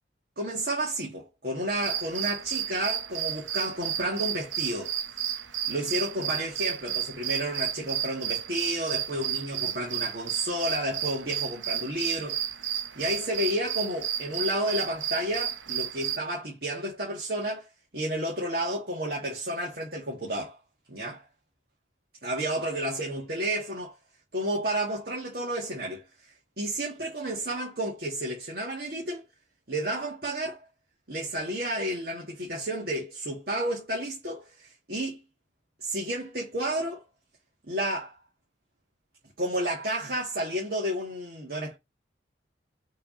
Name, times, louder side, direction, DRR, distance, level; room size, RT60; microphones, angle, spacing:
voice 1, 0.4-4.9 5.7-12.4 12.7-17.7 17.9-20.6 20.9-21.2 22.2-23.9 24.3-29.2 29.7-30.7 31.1-35.2 35.8-37.0 37.7-38.1 39.4-41.8, right 1 dB, 55° right, 1.8 m, -31 dB
sound 1, 1.7-16.2, right 10 dB, 85° right, 0.8 m, -32 dB
6.6 x 3.4 x 5.2 m
head